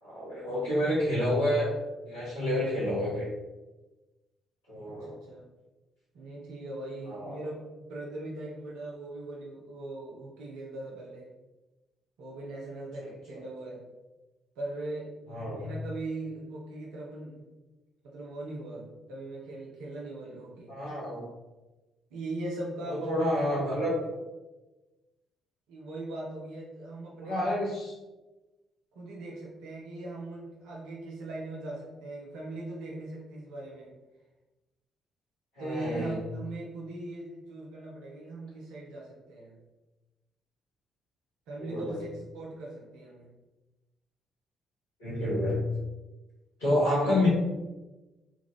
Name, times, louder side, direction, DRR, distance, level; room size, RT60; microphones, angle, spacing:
voice 1, 0.0-1.7 2.1-3.3 4.7-5.1 7.0-7.4 13.0-13.1 15.3-15.6 20.7-21.3 22.9-23.9 27.2-27.9 35.6-36.2 41.6-42.0 45.0-45.6 46.6-47.3, left 1 dB, 75° left, -10 dB, 0.9 m, -29 dB
voice 2, 4.9-5.5 6.1-11.3 12.2-13.8 14.6-15.1 15.4-17.5 18.1-20.7 22.1-23.4 23.8-24.0 25.7-27.4 29.0-33.9 35.6-39.6 41.5-43.3 46.8-47.3, right 2 dB, 65° right, -3 dB, 0.6 m, -40 dB
3.5 x 2.3 x 3.2 m, 1.1 s
figure-of-eight pair, 45°, 0 cm